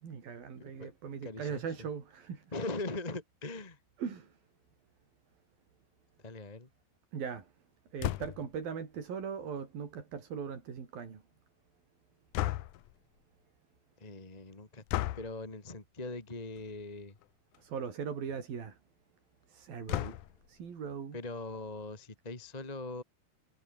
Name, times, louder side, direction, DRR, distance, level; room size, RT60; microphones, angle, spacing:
voice 1, 0.0-2.5 4.0-4.4 7.1-7.5 7.9-11.2 17.6-18.8 19.5-20.2 20.5-21.2, right 6 dB, 60° right, 5.6 m, -39 dB
voice 2, 0.6-0.9 1.2-1.6 2.5-3.8 6.2-6.7 14.0-14.8 15.1-17.2 21.1-23.0, left 2 dB, 15° left, 1.5 m, -41 dB
sound 1, 8.0-8.6 12.3-12.9 14.9-15.3 16.6-16.8 17.2-17.3 17.5-17.6 19.9-20.5, left 15 dB, 75° left, 1.9 m, -34 dB
omnidirectional pair, 4.7 m